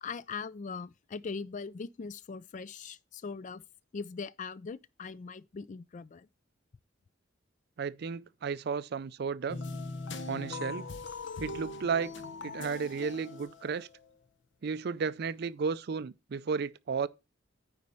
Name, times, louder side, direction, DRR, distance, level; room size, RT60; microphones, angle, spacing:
voice 1, 0.0-3.6 3.9-6.3, left 5 dB, 40° left, 0.4 m, -40 dB
voice 2, 7.8-9.6 10.3-10.9 11.4-12.1 12.4-13.9 14.6-17.1, right 5 dB, 55° right, 0.4 m, -33 dB
sound 1, 9.5-14.1, left 3 dB, 65° left, 0.8 m, -40 dB
9.5 x 4.2 x 5.5 m
head